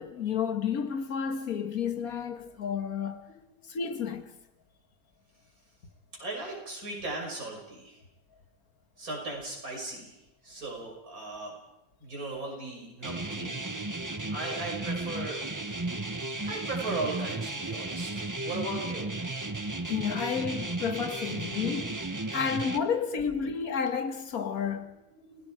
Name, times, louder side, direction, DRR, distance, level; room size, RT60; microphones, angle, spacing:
voice 1, 0.0-3.2 3.7-4.2 19.9-22.0 22.3-24.9, left 7 dB, 85° left, 1.9 m, -31 dB
voice 2, 3.3-3.6 6.1-8.0 9.0-11.5 12.0-13.6 14.3-15.4 16.4-19.1 24.5-24.6 24.9-25.5, right 2 dB, 90° right, 6.6 m, -37 dB
sound 1, 13.0-22.8, right 2 dB, 15° right, 0.8 m, -34 dB
30.0 x 18.0 x 4.8 m
omnidirectional pair, 1.5 m